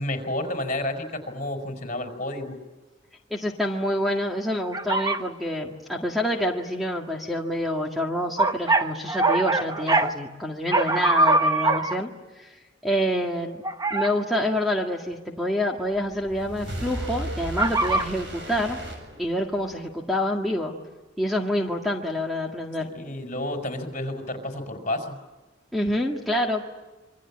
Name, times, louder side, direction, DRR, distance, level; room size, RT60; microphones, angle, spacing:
voice 1, 0.0-2.6 22.8-25.2, left 1 dB, 40° left, 5 dB, 5.3 m, -30 dB
voice 2, 3.3-12.1 12.4-13.6 13.9-18.8 19.2-20.7 21.2-22.9 25.7-26.6, equal, ahead, 0 dB, 1.8 m, -27 dB
sound 1, 4.7-5.2 8.4-10.1 10.7-12.0 13.6-14.1 17.6-18.1, right 2 dB, 20° right, 1.2 m, -22 dB
sound 2, 15.9-19.7, right 1 dB, 70° right, 7.7 m, -35 dB
27.0 x 24.5 x 8.7 m, 1.2 s
head